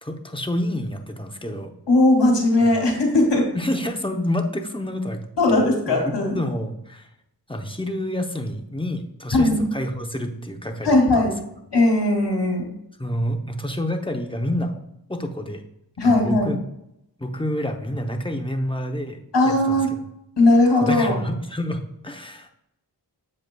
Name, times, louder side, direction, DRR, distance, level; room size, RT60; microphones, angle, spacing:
voice 1, 0.0-1.7 2.6-2.7 3.5-5.2 5.5-7.1 7.5-11.3 13.0-14.8 15.1-15.6 16.0-16.6 17.2-19.2 19.4-20.0 20.8-22.5, left 1 dB, 15° left, 4 dB, 0.8 m, -28 dB
voice 2, 1.9-3.5 5.4-6.4 9.3-9.7 10.8-11.3 11.7-12.7 16.0-16.6 19.3-19.9 20.4-21.2, left 2 dB, 80° left, 0 dB, 2.4 m, -18 dB
7.6 x 7.6 x 2.3 m, 0.80 s
wide cardioid pair, 90°, 41 cm